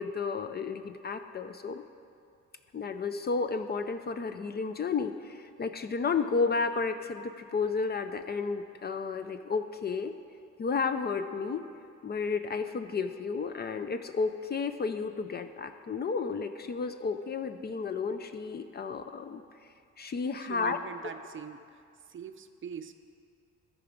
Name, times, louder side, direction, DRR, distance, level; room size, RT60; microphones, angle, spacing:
voice 1, 0.0-1.8 2.7-10.1 10.6-11.6 12.0-19.4 20.0-20.8, left 5 dB, 35° left, 9 dB, 0.4 m, -32 dB
voice 2, 20.4-22.9, right 7 dB, 40° right, 8 dB, 0.6 m, -43 dB
13.5 x 4.9 x 5.1 m, 2.4 s
cardioid pair, 90°, 30 cm